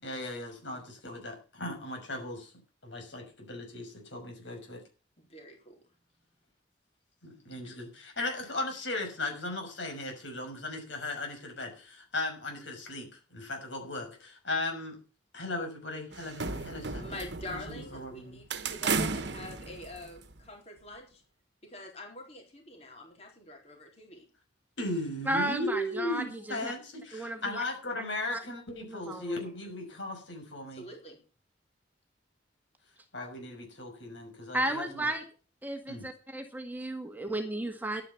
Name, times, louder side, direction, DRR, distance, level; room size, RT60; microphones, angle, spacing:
voice 1, 0.0-2.5 2.8-4.8 7.2-15.0 15.3-17.2 17.4-18.4 24.8-30.9 33.1-35.0 35.9-36.1, left 2 dB, 75° left, 3 dB, 6.2 m, -37 dB
voice 2, 5.2-5.8 16.9-21.2 21.6-24.2 30.7-31.2, left 1 dB, 35° left, 2 dB, 4.2 m, -45 dB
sound 1, 16.1-18.1 18.5-20.4, right 4 dB, 65° right, 1.2 m, -34 dB
voice 3, 25.2-26.7 27.1-27.6 28.3-28.4 28.9-29.4 34.5-35.2 35.6-38.0, right 1 dB, 10° right, 5 dB, 1.8 m, -33 dB
11.5 x 9.8 x 7.0 m, 0.36 s
head